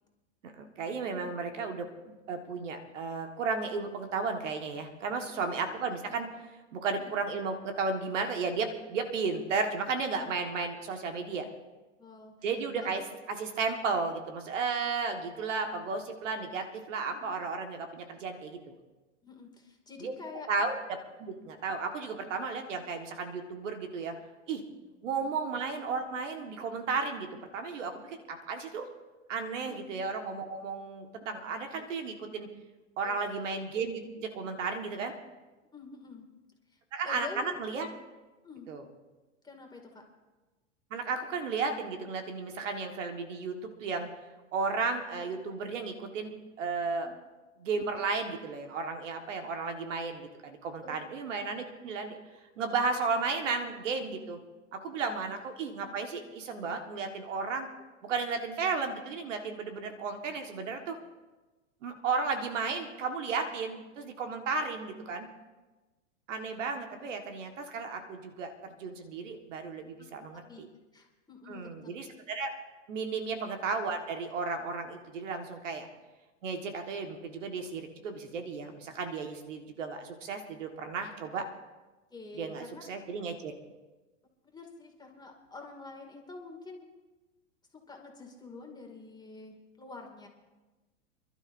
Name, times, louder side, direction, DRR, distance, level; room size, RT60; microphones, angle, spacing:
voice 1, 0.4-6.3 6.7-11.5 12.4-13.0 13.4-18.7 20.0-20.1 20.5-24.1 24.5-24.6 25.0-27.3 27.5-28.9 29.3-32.5 33.0-35.1 36.9-37.9 38.7-38.8 40.9-43.5 43.8-44.1 44.5-47.1 47.6-52.2 52.6-54.4 54.7-57.7 58.0-61.0 61.8-65.3 66.3-70.7 71.5-72.5 72.9-75.9 76.4-81.4 82.3-83.5, right 4 dB, 75° right, 5 dB, 1.7 m, -34 dB
voice 2, 5.4-5.8 7.0-7.1 12.0-12.3 12.8-12.9 17.1-17.2 19.2-20.5 24.8-24.9 25.3-25.4 29.7-29.8 33.0-33.2 35.7-36.3 36.7-36.8 37.0-37.6 38.4-38.7 39.4-40.0 47.0-47.1 50.8-51.0 70.0-70.1 70.3-70.6 70.9-71.9 73.1-73.3 82.1-82.9 84.4-86.9 87.9-90.3, left 3 dB, 10° left, 1 dB, 2.4 m, -47 dB
27.5 x 12.0 x 2.7 m, 1.2 s
hypercardioid pair, 100°, 37 cm